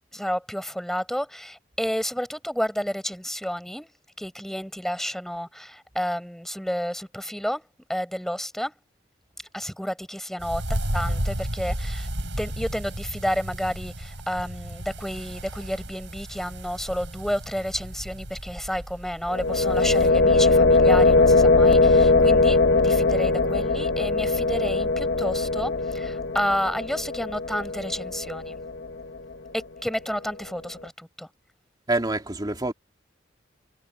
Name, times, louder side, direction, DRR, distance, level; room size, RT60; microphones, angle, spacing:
voice 1, 0.1-3.9 4.2-7.6 7.9-8.7 9.5-12.1 12.4-28.6 29.5-31.3, equal, ahead, 6.3 m, -31 dB
sound 1, 10.4-20.1, right 1 dB, 70° right, 7.3 m, -33 dB
sound 2, 19.3-29.2, left 3 dB, 70° left, 1.5 m, -20 dB
voice 2, 31.9-32.7, right 2 dB, 20° right, 2.9 m, -26 dB
head